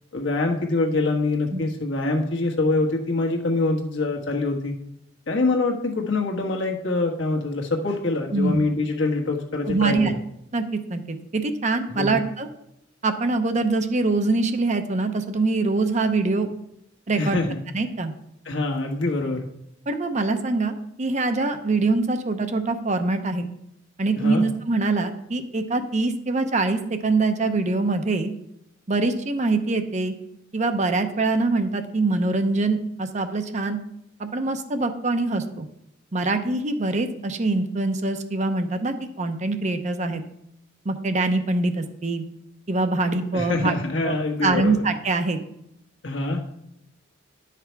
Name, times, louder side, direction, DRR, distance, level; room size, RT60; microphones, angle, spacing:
voice 1, 0.1-4.7 5.3-10.2 11.9-12.2 17.2-17.6 18.4-19.4 24.2-24.4 43.3-44.8 46.0-46.4, left 2 dB, 65° left, 0 dB, 1.5 m, -25 dB
voice 2, 9.7-10.1 10.5-10.6 10.9-12.5 13.0-16.5 17.1-17.4 17.7-18.1 19.9-23.5 24.0-28.3 28.9-30.1 30.5-33.8 34.2-35.7 36.1-40.2 40.8-42.2 42.7-43.7 44.0-44.1 44.4-45.4, right 3 dB, 35° right, 7 dB, 0.7 m, -24 dB
11.0 x 5.8 x 4.6 m, 0.79 s
head